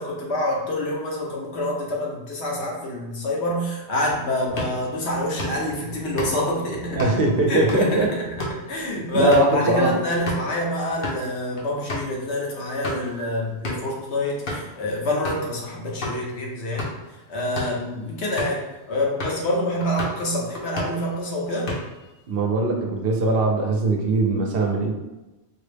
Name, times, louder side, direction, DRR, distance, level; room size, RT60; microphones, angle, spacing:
voice 1, 0.0-7.0 7.5-8.3 8.7-16.9 17.3-21.7, left 1 dB, 75° left, -2 dB, 1.1 m, -26 dB
sound 1, 4.5-10.5 10.9-11.2 11.6-11.7 11.9-12.1 12.6-13.1 13.6-13.9 14.5-14.8 15.3-15.5 16.0-16.2 16.6-17.1 17.4-17.8 18.4-18.7 19.2-19.5 19.8-20.2 20.6-21.1 21.4-22.1, left 1 dB, 60° left, 0.9 m, -32 dB
voice 2, 6.9-8.1 9.1-10.0 22.3-24.9, right 2 dB, 65° right, 1 dB, 0.8 m, -21 dB
4.6 x 2.0 x 3.3 m, 1.1 s
omnidirectional pair, 1.1 m